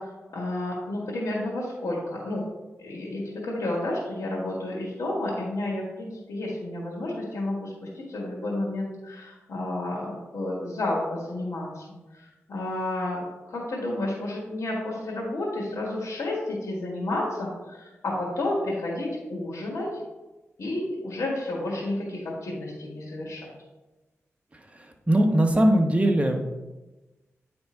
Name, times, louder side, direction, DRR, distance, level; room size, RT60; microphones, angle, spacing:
voice 1, 0.0-2.4 2.8-13.2 13.5-20.0 20.6-23.5, left 1 dB, 70° left, -7 dB, 1.9 m, -31 dB
voice 2, 24.5-26.5, right 1 dB, 25° right, 3 dB, 1.1 m, -21 dB
9.3 x 3.5 x 4.4 m, 1.1 s
cardioid pair, 60°, 5 cm